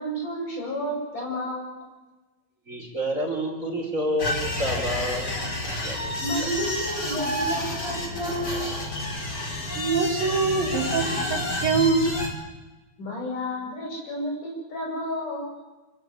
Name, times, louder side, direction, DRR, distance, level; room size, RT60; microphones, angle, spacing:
voice 1, 0.0-1.8 6.2-8.8 13.0-15.7, equal, 60° left, -1 dB, 9.1 m, -31 dB
voice 2, 2.7-5.3 5.6-6.5, equal, 20° right, 1 dB, 4.7 m, -29 dB
sound 1, 4.2-12.3, left 1 dB, 25° left, 4.5 m, -29 dB
voice 3, 9.8-12.1, right 4 dB, 75° right, 5 dB, 4.0 m, -24 dB
27.5 x 17.0 x 8.8 m, 1.1 s
omnidirectional pair, 4.1 m